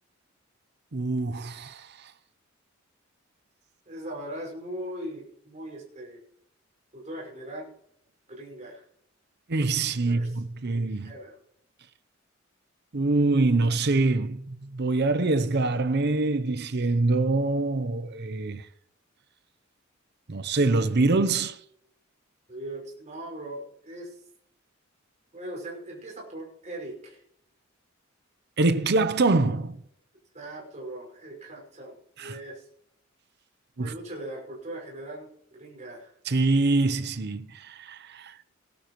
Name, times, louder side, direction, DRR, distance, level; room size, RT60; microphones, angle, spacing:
voice 1, 0.9-2.1 9.5-11.1 12.9-18.6 20.3-21.6 28.6-29.8 32.2-32.4 33.8-33.9 36.3-38.3, right 3 dB, 55° right, 0.8 m, -25 dB
voice 2, 3.9-6.2 6.9-7.7 8.3-8.9 10.0-11.4 22.5-24.2 25.3-27.2 30.3-32.7 33.8-36.1, right 1 dB, 35° right, 5.8 m, -40 dB
18.5 x 12.0 x 3.1 m
head